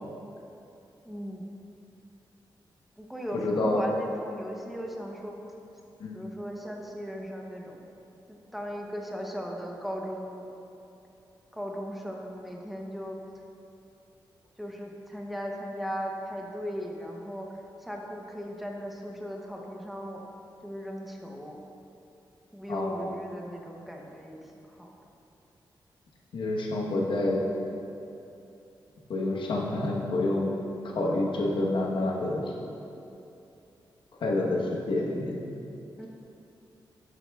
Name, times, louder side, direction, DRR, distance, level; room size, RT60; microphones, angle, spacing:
voice 1, 1.0-1.5 3.0-5.4 6.1-7.8 8.5-10.4 11.5-13.2 14.6-20.2 20.6-21.6 22.5-24.4 24.7-24.9 36.0-36.1, equal, ahead, -1 dB, 0.8 m, -37 dB
voice 2, 3.3-4.0 6.0-6.2 22.7-23.2 26.3-27.4 29.1-30.5 30.8-32.5 34.2-35.4, left 2 dB, 85° left, -2 dB, 1.2 m, -28 dB
12.0 x 8.2 x 2.4 m, 2.8 s
wide cardioid pair, 145°, 8 cm